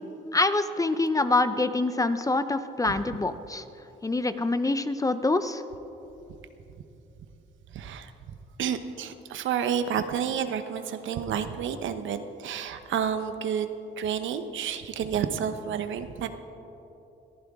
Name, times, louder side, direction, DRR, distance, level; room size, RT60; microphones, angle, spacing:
voice 1, 0.3-3.6 4.0-5.6, left 2 dB, 15° left, 11 dB, 0.7 m, -25 dB
voice 2, 7.7-13.7 14.0-16.3, right 8 dB, 75° right, 9 dB, 1.0 m, -30 dB
22.0 x 14.5 x 3.6 m, 3.0 s
cardioid pair, 90°, 20 cm